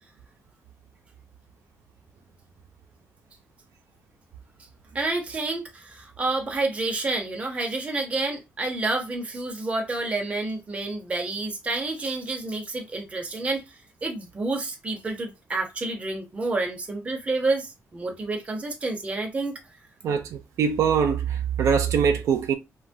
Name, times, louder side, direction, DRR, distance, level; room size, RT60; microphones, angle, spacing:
voice 1, 4.9-13.6 14.0-19.6, right 2 dB, 25° right, 0.7 m, -29 dB
voice 2, 20.0-22.5, right 7 dB, 85° right, 0.5 m, -23 dB
3.2 x 2.2 x 2.6 m
wide cardioid pair, 155°, 5 cm